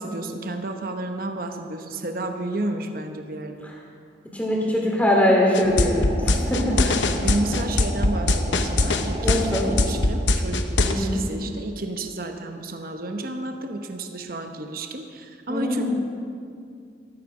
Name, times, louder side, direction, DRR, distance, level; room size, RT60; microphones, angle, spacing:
voice 1, 0.0-3.7 6.7-15.8, right 2 dB, 50° right, 5 dB, 1.0 m, -31 dB
voice 2, 4.3-6.8 9.2-9.7 10.8-11.2 15.5-15.8, left 1 dB, 10° left, -3 dB, 2.7 m, -22 dB
sound 1, 5.5-10.9, left 2 dB, 80° left, 0.9 m, -21 dB
sound 2, 5.6-10.0, right 1 dB, 30° right, 3.2 m, -34 dB
14.0 x 13.5 x 5.0 m, 2.3 s
head